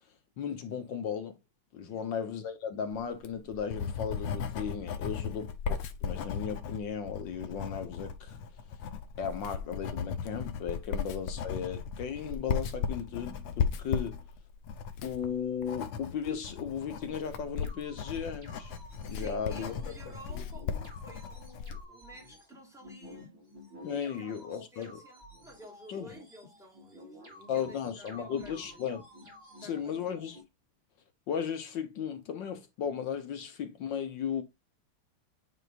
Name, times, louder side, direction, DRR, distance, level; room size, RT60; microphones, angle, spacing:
voice 1, 0.4-1.3 1.7-8.4 9.2-14.2 15.0-18.7 19.1-19.7 20.3-20.4 23.8-25.0 25.9-26.1 27.5-29.0 29.6-30.4 31.3-34.4, left 7 dB, 65° left, 1.5 m, -36 dB
voice 2, 1.8-2.1 5.0-5.6 10.9-11.0 19.1-23.4 24.0-28.9 29.6-30.1, equal, ahead, 2.9 m, -53 dB
Writing, 3.1-21.8, left 6 dB, 85° left, 1.8 m, -36 dB
sound 1, 17.6-30.4, equal, 25° right, 2.9 m, -52 dB
9.1 x 4.4 x 2.5 m
omnidirectional pair, 2.4 m